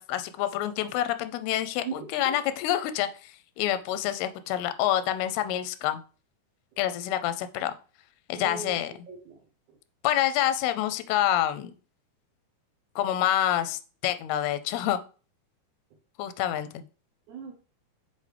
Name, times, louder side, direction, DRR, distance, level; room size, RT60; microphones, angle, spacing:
voice 1, 0.0-6.0 6.8-7.7 8.3-8.9 10.0-11.7 13.0-15.0 16.2-16.8, left 12 dB, 90° left, 11 dB, 2.6 m, -27 dB
voice 2, 1.8-2.3 8.4-9.8 17.3-17.5, right 6 dB, 75° right, 2 dB, 1.8 m, -40 dB
6.7 x 5.2 x 3.3 m, 0.37 s
omnidirectional pair, 4.4 m